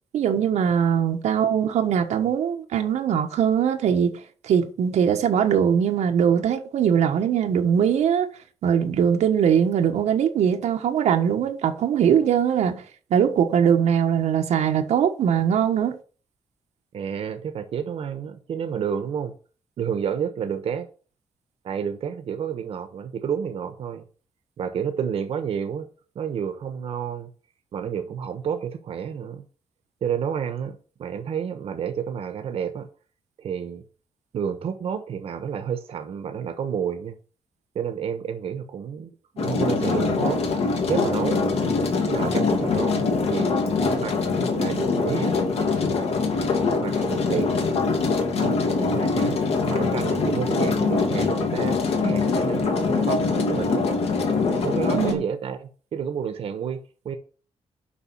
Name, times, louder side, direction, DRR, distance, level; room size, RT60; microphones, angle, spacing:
voice 1, 0.1-4.1 4.4-8.3 8.6-12.8 13.1-16.0 54.9-55.2, right 8 dB, 90° right, 1.3 m, -21 dB
voice 2, 16.9-19.3 19.8-20.9 21.6-24.0 24.6-25.9 26.1-27.3 27.7-29.5 30.0-32.9 33.4-33.8 34.3-37.2 37.7-40.4 40.9-41.5 42.1-43.5 44.0-44.2 44.5-45.4 46.8-47.6 48.4-49.4 49.7-53.9 54.4-57.2, right 7 dB, 60° right, 1.1 m, -30 dB
sound 1, 39.4-55.1, left 4 dB, 65° left, 1.9 m, -23 dB
7.1 x 5.6 x 7.2 m
wide cardioid pair, 170°, 11 cm